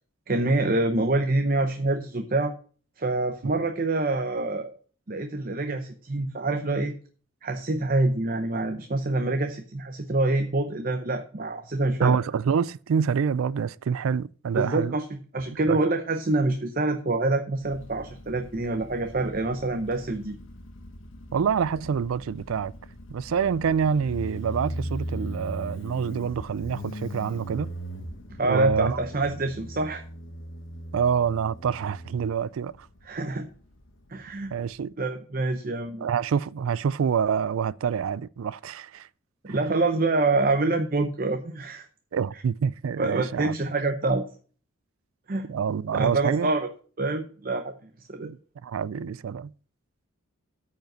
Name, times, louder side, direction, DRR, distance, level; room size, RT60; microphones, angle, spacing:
voice 1, 0.3-2.5 3.0-4.7 5.1-6.9 7.4-12.2 14.5-20.4 28.4-30.0 33.1-33.5 34.1-34.6 35.0-36.1 39.4-41.9 43.0-44.2 45.3-45.5 45.9-46.7 47.0-47.7 48.0-48.3, right 2 dB, 40° right, 0.7 m, -26 dB
voice 2, 12.0-15.0 15.7-15.8 21.3-22.7 23.1-27.7 28.4-29.0 30.9-32.9 34.5-34.9 36.0-39.1 39.5-39.6 42.1-43.5 45.5-46.5 48.2-48.4 48.6-49.5, right 7 dB, 80° right, 0.4 m, -26 dB
Motorcycle, 17.6-34.8, equal, 65° left, 1.1 m, -39 dB
9.0 x 5.3 x 6.6 m
head